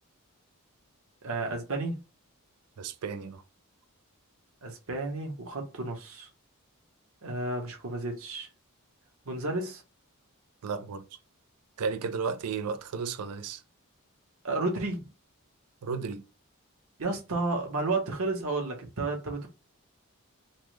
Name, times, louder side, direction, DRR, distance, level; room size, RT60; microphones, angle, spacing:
voice 1, 1.2-2.0 4.6-6.3 7.2-8.5 9.2-9.8 14.4-15.1 17.0-19.5, right 2 dB, 65° right, 0.9 m, -32 dB
voice 2, 2.8-3.4 10.6-11.0 11.8-13.6 15.8-16.3, right 5 dB, 90° right, 0.4 m, -33 dB
3.1 x 2.1 x 3.1 m
head